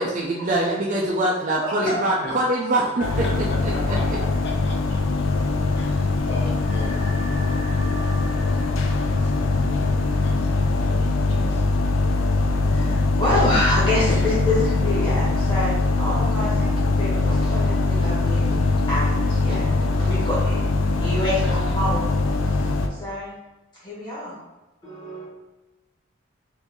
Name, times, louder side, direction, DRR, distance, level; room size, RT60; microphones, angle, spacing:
voice 1, 0.0-3.0 3.6-4.0, right 1 dB, 40° right, -4 dB, 0.3 m, -23 dB
sound 1, 1.5-5.5 5.8-5.9 6.6-11.2, left 1 dB, 80° right, 0.8 m, -42 dB
sound 2, 3.0-22.9, left 3 dB, 85° left, 0.4 m, -22 dB
voice 2, 3.0-8.1 8.4-11.6 21.4-21.8, left 1 dB, 60° left, -2 dB, 0.8 m, -39 dB
voice 3, 12.7-18.5 18.9-19.7 20.0-20.7 21.0-22.1 22.4-23.3 23.8-24.3 24.8-25.3, left 1 dB, 25° left, -8 dB, 1.3 m, -27 dB
3.5 x 2.6 x 3.0 m, 1.1 s
head